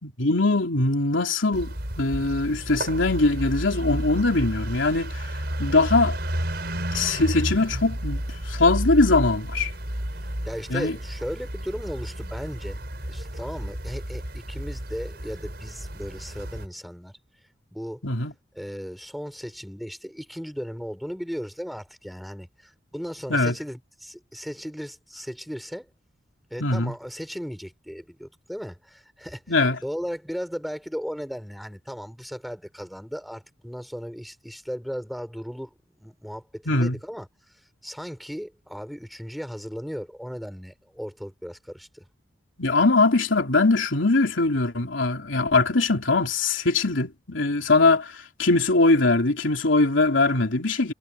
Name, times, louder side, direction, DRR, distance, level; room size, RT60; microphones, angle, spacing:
voice 1, 0.0-5.3 5.6-6.2 6.9-9.7 10.7-11.0 18.0-18.3 23.3-23.5 26.6-26.9 29.5-29.8 36.7-37.0 42.6-50.9, left 3 dB, 80° left, 3.2 m, -22 dB
sound 1, 1.5-16.7, right 1 dB, 55° right, 5.6 m, -32 dB
voice 2, 10.4-12.8 13.1-17.2 17.7-18.0 18.5-25.9 26.5-29.6 29.8-37.3 37.8-42.0, equal, ahead, 6.5 m, -36 dB
head